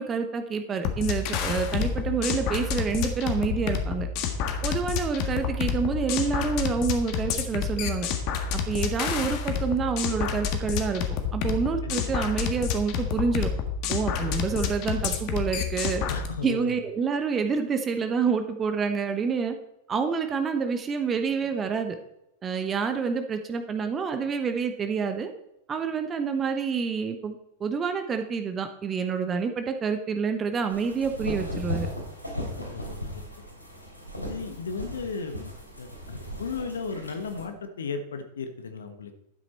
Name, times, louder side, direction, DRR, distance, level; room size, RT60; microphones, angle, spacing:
voice 1, 0.0-4.1 4.6-8.1 8.5-11.0 11.3-13.5 13.9-16.0 16.4-19.6 19.9-22.0 22.4-25.3 25.7-31.9, right 5 dB, 25° right, 7 dB, 1.0 m, -28 dB
sound 1, 0.8-16.3, left 7 dB, 45° left, 1.7 m, -29 dB
voice 2, 11.8-12.3 14.2-14.4 16.1-16.7 32.7-33.2 34.1-39.2, left 5 dB, 65° left, 8 dB, 1.2 m, -36 dB
sound 2, 30.7-37.4, left 1 dB, 85° left, 3.2 m, -36 dB
12.0 x 9.2 x 4.3 m, 0.85 s
figure-of-eight pair, 90°, 0 cm